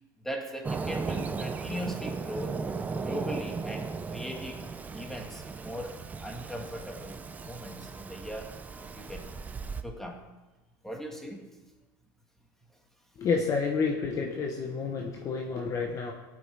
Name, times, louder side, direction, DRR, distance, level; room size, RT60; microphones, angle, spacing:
voice 1, 0.2-2.6 3.0-4.7 4.9-8.5 8.9-9.3 9.8-10.3 10.8-11.5, equal, 5° left, 2 dB, 1.8 m, -39 dB
Fireworks, 0.6-9.8, right 4 dB, 15° right, 0.6 m, -36 dB
voice 2, 13.2-16.1, left 5 dB, 35° left, 1 dB, 1.2 m, -29 dB
16.5 x 8.8 x 3.5 m, 1.2 s
supercardioid pair, 130°, 10 cm